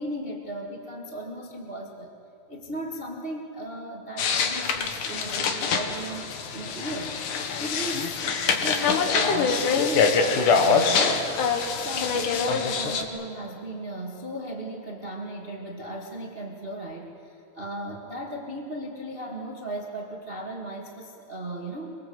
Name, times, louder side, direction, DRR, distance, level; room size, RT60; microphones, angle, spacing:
voice 1, 0.0-2.1 2.5-11.2 11.7-21.9, right 1 dB, 70° right, 0 dB, 0.5 m, -36 dB
sound 1, 4.2-13.0, left 5 dB, 60° left, 2.6 m, -24 dB
24.0 x 23.0 x 7.9 m, 2.6 s
omnidirectional pair, 4.8 m